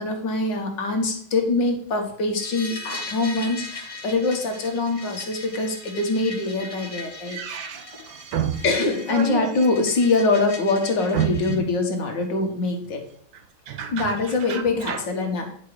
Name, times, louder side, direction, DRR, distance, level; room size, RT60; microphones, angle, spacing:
voice 1, 0.0-7.4 8.6-13.0 13.9-15.5, left 3 dB, 65° left, 3 dB, 2.0 m, -24 dB
sound 1, 2.4-11.6, left 2 dB, 20° left, 0.9 m, -39 dB
voice 2, 7.3-8.6 9.1-9.5 11.1-11.3 13.7-14.1 14.5-15.0, right 8 dB, 70° right, 7 dB, 1.8 m, -28 dB
9.9 x 5.2 x 4.8 m, 0.62 s
omnidirectional pair, 2.2 m